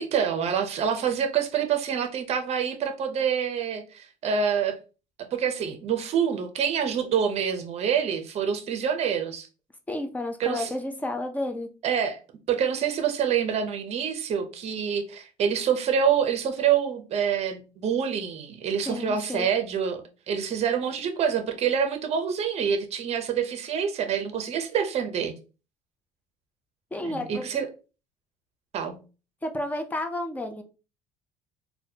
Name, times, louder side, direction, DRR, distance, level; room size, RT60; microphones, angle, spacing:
voice 1, 0.0-4.8 5.3-9.5 10.4-10.7 11.8-12.2 12.5-25.3 27.0-27.7 28.7-29.0, right 7 dB, 35° right, 0.6 m, -26 dB
voice 2, 9.9-11.7 18.9-19.5 26.9-27.5 29.4-30.6, left 1 dB, 10° left, 0.4 m, -31 dB
4.0 x 2.2 x 2.7 m
cardioid pair, 155°, 18 cm